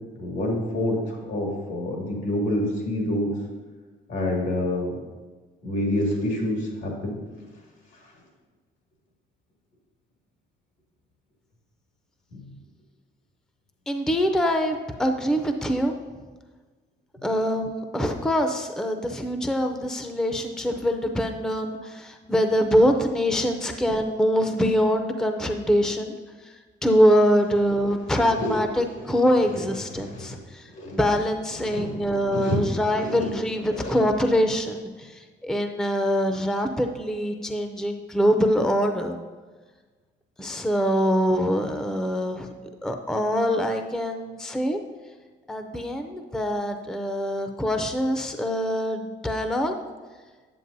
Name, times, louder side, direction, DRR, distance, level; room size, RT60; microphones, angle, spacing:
voice 1, 0.2-3.3 4.1-4.9 5.6-7.1 12.3-12.5 28.3-28.6 29.5-29.6 29.9-30.4 30.7-31.0 31.6-32.0 32.3-33.3 33.7-34.0, left 1 dB, 80° left, -1 dB, 2.1 m, -27 dB
voice 2, 13.9-16.0 17.2-26.2 26.4-26.5 26.8-39.2 40.4-42.5 42.8-44.8 45.5-49.7, equal, 5° left, 5 dB, 0.5 m, -24 dB
9.2 x 7.3 x 2.7 m, 1.4 s
cardioid pair, 90°, 20 cm